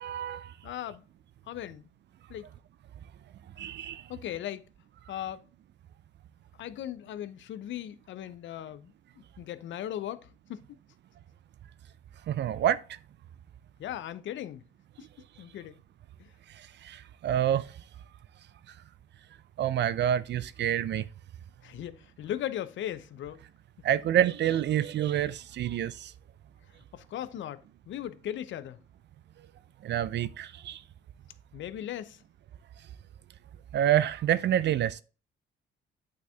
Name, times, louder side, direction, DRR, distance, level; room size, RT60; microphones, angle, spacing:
voice 1, 0.0-0.5 3.6-4.0 12.3-12.8 16.8-17.7 19.6-21.0 23.8-26.1 29.8-30.8 33.7-35.0, right 11 dB, 60° right, 0.6 m, -27 dB
voice 2, 0.6-1.0 1.5-1.8 2.3-2.5 4.1-4.6 5.1-5.5 6.6-8.9 9.4-10.6 13.8-14.6 15.0-15.1 15.4-15.8 16.2-16.3 21.6-23.4 26.9-28.8 31.5-32.2, left 11 dB, 70° left, 0.7 m, -38 dB
8.5 x 4.5 x 3.4 m
cardioid pair, 90°, 20 cm